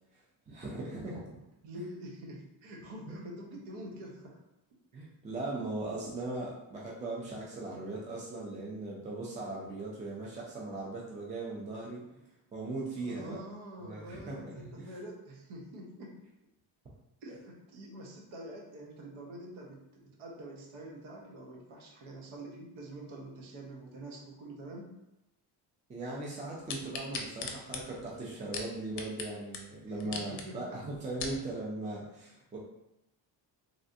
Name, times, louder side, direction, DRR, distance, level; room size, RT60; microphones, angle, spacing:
voice 1, 0.5-1.3 3.1-3.2 4.9-12.0 12.5-13.4 13.8-14.9 25.9-32.6, right 2 dB, 20° right, -5 dB, 0.3 m, -39 dB
voice 2, 1.6-4.4 13.0-16.2 17.2-24.9 29.8-30.8, right 1 dB, 90° right, -1 dB, 0.9 m, -46 dB
sound 1, 26.7-29.3 29.5-29.6 30.0-30.4 30.9-31.4 32.0-32.1, left 5 dB, 55° left, 0.5 m, -38 dB
3.2 x 2.5 x 2.5 m, 0.90 s
cardioid pair, 150°, 47 cm